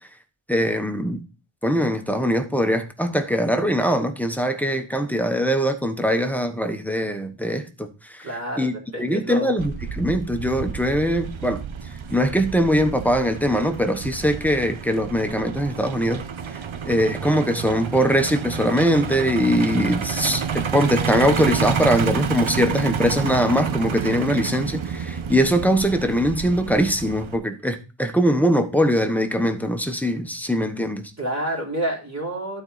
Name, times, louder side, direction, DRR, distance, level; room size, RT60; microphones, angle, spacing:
voice 1, 0.5-1.2 1.6-8.3 8.6-8.7 9.0-11.6 12.1-16.2 16.8-31.1, equal, 5° left, 1.1 m, -22 dB
voice 2, 8.2-9.6 31.2-32.6, right 1 dB, 35° right, 3.5 m, -29 dB
Truck, 9.6-27.4, right 6 dB, 80° right, 1.0 m, -29 dB
12.0 x 4.4 x 4.1 m
wide cardioid pair, 90°, 47 cm